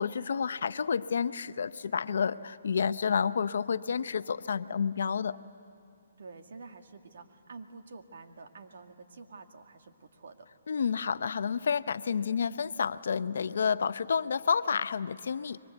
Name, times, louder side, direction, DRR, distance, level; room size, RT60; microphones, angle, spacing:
voice 1, 0.0-5.4 10.7-15.6, left 6 dB, 70° left, 13 dB, 0.7 m, -30 dB
voice 2, 6.2-10.5, right 3 dB, 70° right, 5 dB, 2.0 m, -49 dB
29.5 x 23.0 x 8.1 m, 2.9 s
hypercardioid pair, 155°, 0 cm